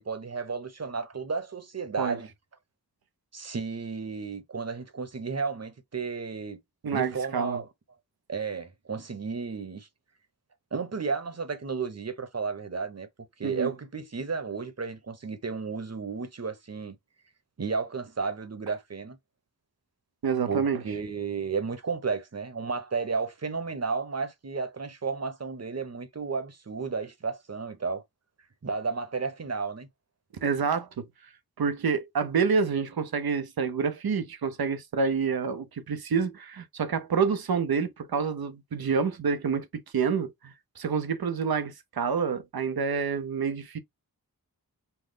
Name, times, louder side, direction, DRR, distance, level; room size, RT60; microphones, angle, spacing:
voice 1, 0.0-2.3 3.3-6.6 6.9-7.7 8.3-9.9 10.7-17.0 17.6-19.2 20.5-28.0 28.6-29.9, right 5 dB, 45° right, 1.1 m, -33 dB
voice 2, 6.8-7.6 13.4-13.7 20.2-20.8 30.4-31.1 31.6-43.8, right 5 dB, 80° right, 0.9 m, -28 dB
5.6 x 2.3 x 3.8 m
wide cardioid pair, 100°, 36 cm